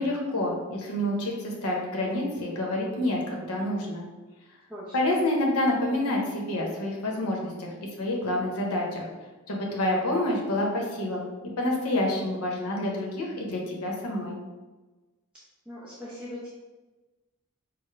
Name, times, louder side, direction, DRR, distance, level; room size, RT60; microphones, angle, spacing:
voice 1, 0.0-4.0 4.9-7.7 8.0-9.1 9.5-11.2 11.6-14.4, left 1 dB, 90° left, -1 dB, 0.9 m, -28 dB
voice 2, 15.7-16.5, left 1 dB, 5° right, -10 dB, 0.7 m, -40 dB
4.8 x 2.1 x 4.5 m, 1.2 s
head